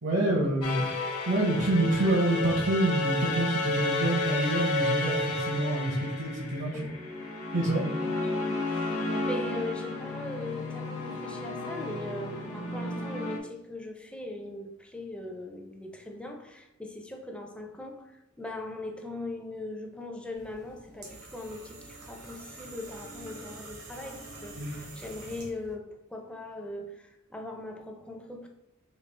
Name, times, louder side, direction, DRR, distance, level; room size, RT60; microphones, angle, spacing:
voice 1, 0.0-1.0 1.3-6.9 7.5-7.9 24.6-24.8, right 1 dB, 60° right, -1 dB, 0.7 m, -27 dB
sound 1, 0.6-13.4, left 2 dB, 80° left, 0.7 m, -32 dB
voice 2, 8.0-8.4 8.6-28.5, left 2 dB, 5° left, 2 dB, 0.4 m, -40 dB
sound 2, 20.3-25.7, right 2 dB, 85° right, 1.2 m, -46 dB
4.3 x 2.7 x 3.3 m, 0.93 s
head